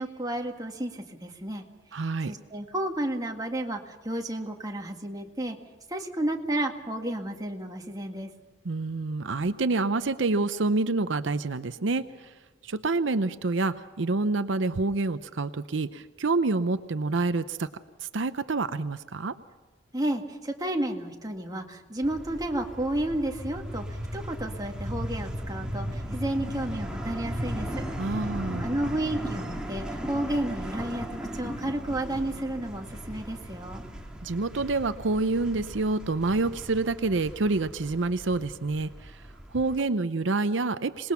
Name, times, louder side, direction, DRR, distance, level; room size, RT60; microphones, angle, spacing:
voice 1, 0.0-1.6 2.3-5.6 5.9-8.3 19.9-27.9 28.6-33.8, right 1 dB, 20° right, 2 dB, 2.0 m, -32 dB
voice 2, 1.9-2.3 8.6-12.3 12.6-17.7 18.0-19.4 28.0-28.7 34.2-39.2 39.5-41.1, right 3 dB, 75° right, 11 dB, 0.7 m, -27 dB
sound 1, 22.0-39.8, equal, 5° right, 2.3 m, -37 dB
26.5 x 20.0 x 5.8 m, 1.3 s
head